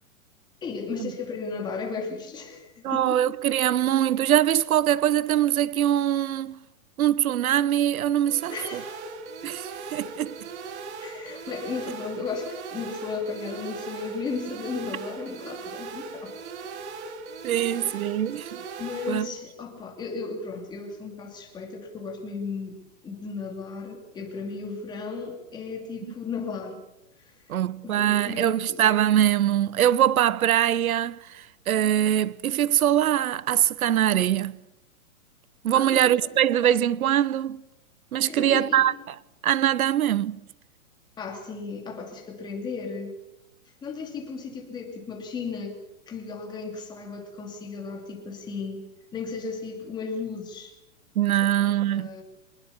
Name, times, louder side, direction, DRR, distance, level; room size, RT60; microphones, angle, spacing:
voice 1, 0.6-3.2 8.5-9.0 11.0-16.4 17.6-18.0 18.8-26.8 27.2-28.8 35.7-36.0 38.3-38.9 41.2-43.2 43.8-48.8 49.1-50.7 51.4-52.2, left 4 dB, 10° left, 2.7 m, -35 dB
voice 2, 2.8-6.6 7.0-8.5 9.4-10.3 17.4-18.6 19.1-19.3 27.5-34.6 35.6-37.6 38.1-38.9 39.4-40.4 51.2-52.1, right 11 dB, 85° right, 0.9 m, -23 dB
sound 1, 8.3-19.3, right 4 dB, 50° right, 2.9 m, -39 dB
24.5 x 20.0 x 7.1 m
hypercardioid pair, 170°, 42 cm